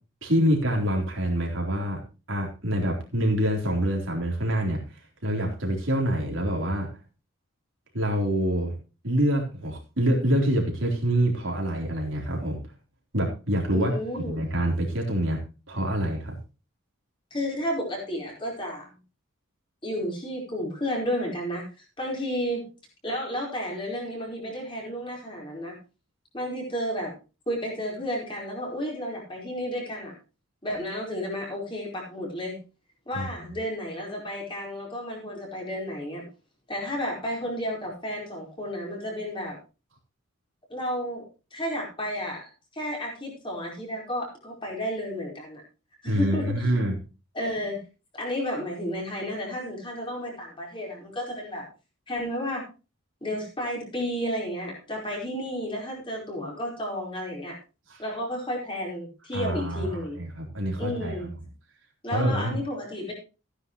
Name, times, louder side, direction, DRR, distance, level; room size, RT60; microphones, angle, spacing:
voice 1, 0.2-2.0 2.3-4.8 5.2-6.9 7.9-8.7 9.0-12.6 13.1-15.4 15.7-16.3 33.1-33.5 46.1-47.0 57.9-58.0 59.3-61.2 62.1-62.6, equal, 65° right, 0 dB, 3.8 m, -26 dB
voice 2, 13.7-14.4 17.3-18.9 19.8-22.7 23.0-25.8 26.3-27.1 27.5-30.1 30.6-32.6 33.1-36.3 36.7-39.6 40.7-41.2 41.5-45.6 46.0-46.7 47.3-47.8 48.1-51.7 52.1-52.6 53.2-57.6 58.0-60.2 60.8-61.3 62.0-63.1, equal, 25° left, -2 dB, 4.6 m, -32 dB
15.5 x 10.0 x 3.1 m, 0.31 s
head